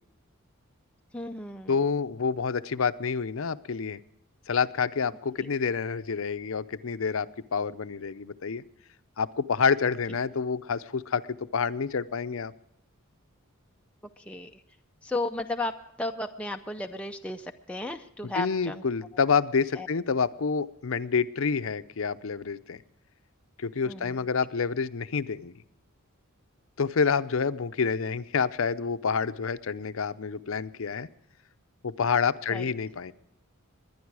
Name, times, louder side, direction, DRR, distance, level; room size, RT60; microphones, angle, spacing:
voice 1, 1.1-1.8 14.2-14.6 15.0-15.7 16.0-18.8 19.7-19.9 23.8-24.2 32.5-32.7, left 2 dB, 5° left, 4 dB, 0.5 m, -34 dB
voice 2, 1.7-4.0 4.5-7.3 7.5-8.6 9.2-12.5 18.2-22.8 23.6-25.5 26.8-31.1 31.8-33.1, left 5 dB, 65° left, 12 dB, 0.6 m, -28 dB
21.5 x 10.0 x 4.8 m, 0.80 s
head